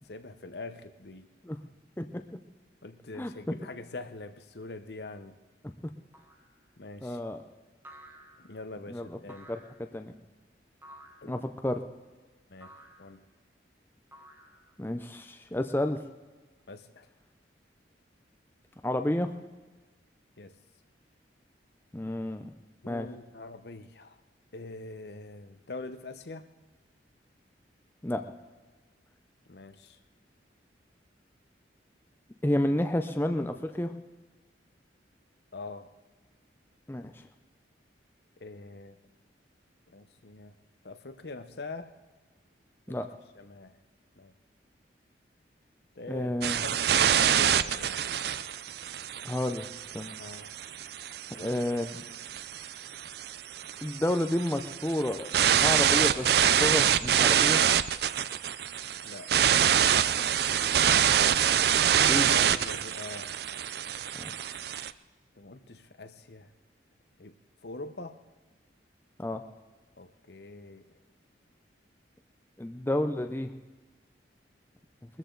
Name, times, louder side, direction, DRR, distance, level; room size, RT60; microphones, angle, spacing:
voice 1, 0.0-1.3 2.8-5.4 6.8-7.2 8.4-9.5 11.2-11.3 12.5-12.7 13.0-13.2 16.7-17.1 20.4-20.6 22.8-24.2 24.5-26.5 29.5-30.0 35.5-35.9 38.4-39.0 39.9-40.5 40.8-41.9 42.9-43.0 43.3-43.8 44.2-44.3 46.0-46.3 46.6-48.2 50.1-50.6 51.4-51.6 59.0-59.6 62.0-63.4 65.4-66.5 67.2-67.4 67.6-68.2 70.0-71.0, left 3 dB, 60° left, 10 dB, 0.8 m, -43 dB
sound 1, 6.1-6.5 7.8-8.6 9.3-9.9 10.8-11.3 12.6-13.1 14.1-14.9, right 1 dB, 10° right, 1.3 m, -52 dB
voice 2, 7.0-7.4 8.9-9.2 9.5-9.6 9.9-10.1 11.3-11.8 14.8-16.0 18.8-19.3 21.9-22.5 22.9-23.1 28.0-28.2 32.4-33.9 36.9-37.1 42.9-43.1 46.1-46.6 49.3-49.7 49.9-50.1 51.4-52.0 53.8-55.3 55.5-57.6 62.1-62.3 64.2-64.3 69.2-69.4 72.6-73.5, left 1 dB, 10° left, 6 dB, 0.5 m, -30 dB
sound 2, 46.4-64.9, right 9 dB, 60° right, 0.4 m, -26 dB
21.5 x 13.5 x 3.9 m, 1.3 s
head